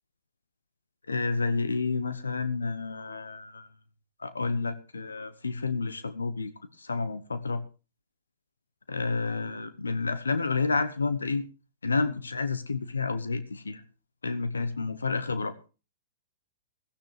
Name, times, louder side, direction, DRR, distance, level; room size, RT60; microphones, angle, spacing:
voice 1, 1.1-3.7 4.2-6.5 6.8-7.6 8.9-11.4 11.8-13.8 14.2-15.5, left 4 dB, 85° left, 1.1 m, -30 dB
16.5 x 14.5 x 3.3 m
figure-of-eight pair, 110°, 0 cm